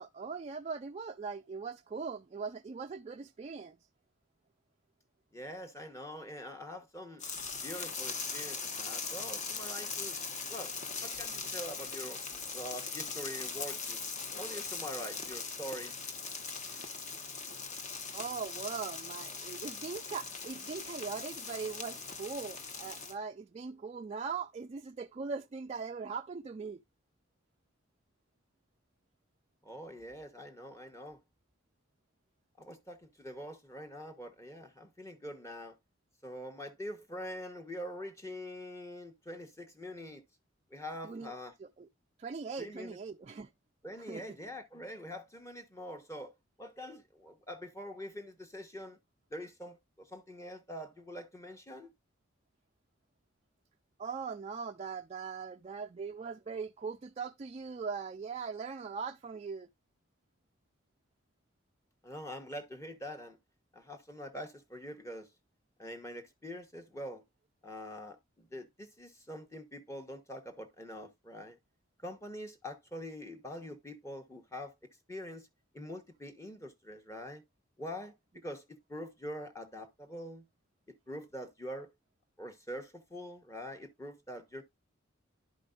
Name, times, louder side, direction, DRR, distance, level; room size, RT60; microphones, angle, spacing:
voice 1, 0.0-3.8 18.1-26.8 41.0-41.3 41.6-41.9 42.2-43.5 44.1-44.2 54.0-59.7, right 5 dB, 30° right, 0.3 m, -40 dB
voice 2, 5.3-7.2 7.6-10.2 10.5-10.7 11.0-12.2 12.5-14.1 14.4-15.9 29.6-31.2 32.6-35.8 36.2-40.2 40.7-41.5 42.6-43.0 43.8-46.3 46.6-49.0 49.3-51.9 62.0-63.4 63.7-65.3 65.8-67.2 67.6-71.6 72.0-74.7 75.1-75.5 75.7-77.4 77.8-80.5 80.9-81.9 82.4-84.6, equal, 15° left, 1.1 m, -44 dB
sound 1, 7.2-23.1, left 5 dB, 35° left, 1.0 m, -40 dB
11.5 x 5.1 x 2.4 m
head